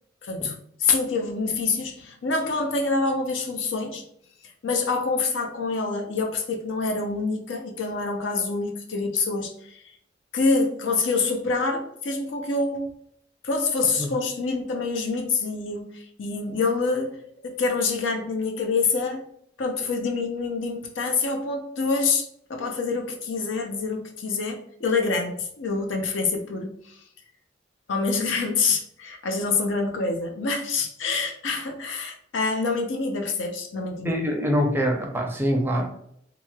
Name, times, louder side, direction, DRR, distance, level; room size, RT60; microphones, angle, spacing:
voice 1, 0.2-0.5 0.8-4.0 4.6-9.8 10.3-12.9 13.4-17.2 17.4-19.2 19.6-27.0 27.9-34.2, left 4 dB, 70° left, 3 dB, 0.5 m, -26 dB
voice 2, 34.0-35.9, equal, 10° right, 1 dB, 0.5 m, -24 dB
3.0 x 2.8 x 2.3 m, 0.68 s
head